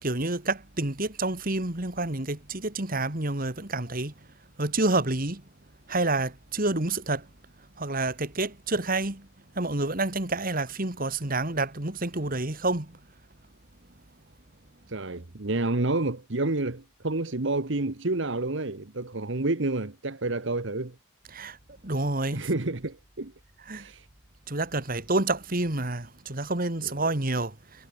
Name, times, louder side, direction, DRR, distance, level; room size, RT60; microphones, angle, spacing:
voice 1, 0.0-4.1 4.6-5.4 5.9-7.3 7.8-9.3 9.6-12.9 21.3-21.6 21.8-22.5 23.7-23.9 24.5-27.5, right 2 dB, 45° right, 2.6 m, -28 dB
voice 2, 14.9-20.9 22.3-23.3 23.7-24.1 26.8-26.9, right 2 dB, 60° right, 1.3 m, -29 dB
head